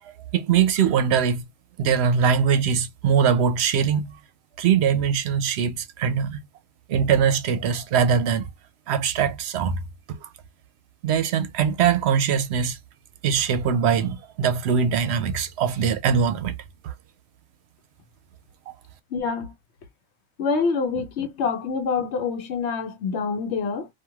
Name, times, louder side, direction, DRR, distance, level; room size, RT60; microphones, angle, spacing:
voice 1, 0.0-1.4 1.8-4.2 4.6-6.4 6.9-8.5 8.9-9.8 10.1-10.3 11.0-12.8 13.2-16.6 16.8-16.9, right 7 dB, 80° right, 0.8 m, -22 dB
voice 2, 19.1-19.5 20.4-23.9, left 5 dB, 90° left, 1.0 m, -26 dB
3.0 x 2.5 x 2.3 m
omnidirectional pair, 1.1 m